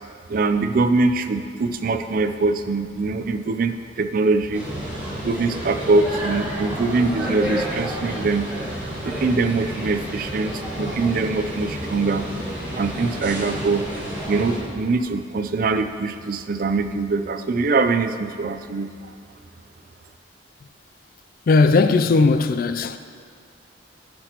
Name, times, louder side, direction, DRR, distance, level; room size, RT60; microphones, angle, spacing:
voice 1, 0.0-4.6 5.2-8.5 9.0-12.3 12.7-13.9 14.3-19.1, right 3 dB, 45° right, 0.4 m, -23 dB
sound 1, 4.5-14.6, equal, 10° right, 2.1 m, -30 dB
voice 2, 21.5-23.0, left 3 dB, 50° left, 0.3 m, -17 dB
12.0 x 6.0 x 2.9 m
head